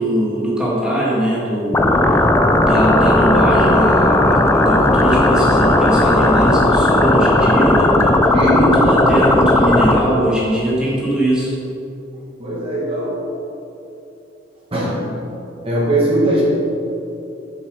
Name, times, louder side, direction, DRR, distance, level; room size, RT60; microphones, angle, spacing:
voice 1, 0.0-1.8 2.6-8.3 8.9-11.5, right 1 dB, 5° right, -7 dB, 1.8 m, -20 dB
sound 1, 1.7-10.0, left 1 dB, 15° left, 0.4 m, -14 dB
voice 2, 8.3-8.7 12.4-13.2 14.7-15.0 15.6-16.4, right 1 dB, 30° right, -6 dB, 1.8 m, -19 dB
7.2 x 7.2 x 5.0 m, 2.8 s
head